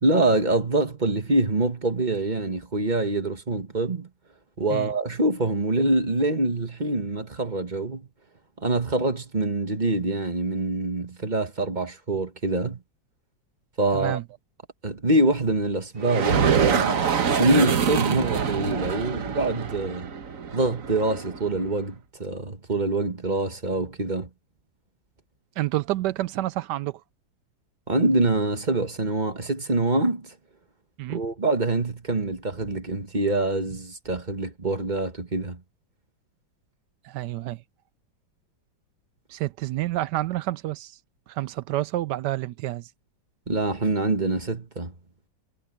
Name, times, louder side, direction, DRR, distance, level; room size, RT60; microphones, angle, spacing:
voice 1, 0.0-4.1 4.6-8.1 8.6-12.8 13.8-14.2 14.8-17.0 17.3-20.1 20.5-24.3 27.9-30.3 31.1-35.6 43.5-44.9, right 2 dB, 25° right, 1.5 m, -25 dB
voice 2, 13.9-14.2 25.6-27.0 31.0-31.2 37.0-37.6 39.3-41.0 41.3-42.9, right 15 dB, 75° right, 1.1 m, -29 dB
sound 1, 16.0-21.7, right 7 dB, 50° right, 1.4 m, -25 dB
omnidirectional pair, 2.0 m